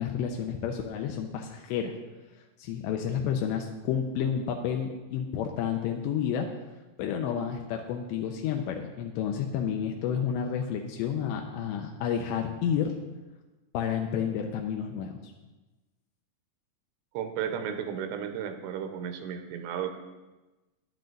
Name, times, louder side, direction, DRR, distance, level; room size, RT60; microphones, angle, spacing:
voice 1, 0.0-1.9 2.6-6.5 7.0-13.0 13.7-15.2, left 8 dB, 85° left, 3 dB, 2.6 m, -30 dB
voice 2, 17.1-20.0, right 8 dB, 85° right, 7 dB, 3.2 m, -34 dB
12.0 x 9.8 x 3.9 m, 1.1 s
omnidirectional pair, 5.7 m